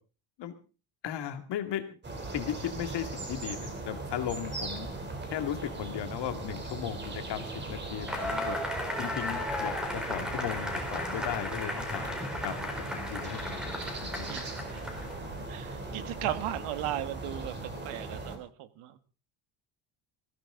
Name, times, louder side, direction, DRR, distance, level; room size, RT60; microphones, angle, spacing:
voice 1, 1.0-1.8 2.3-4.9 5.3-8.6 9.0-12.1 12.4-14.3, left 10 dB, 55° left, 7 dB, 2.4 m, -36 dB
sound 1, 2.0-18.4, right 2 dB, 20° right, 3.5 m, -39 dB
Cheering / Applause / Crowd, 8.1-15.3, left 1 dB, ahead, 4.1 m, -35 dB
voice 2, 14.3-15.1 15.5-17.5 17.8-19.0, right 13 dB, 90° right, 12 dB, 1.8 m, -36 dB
20.5 x 16.0 x 3.8 m, 0.35 s
cardioid pair, 175°, 49 cm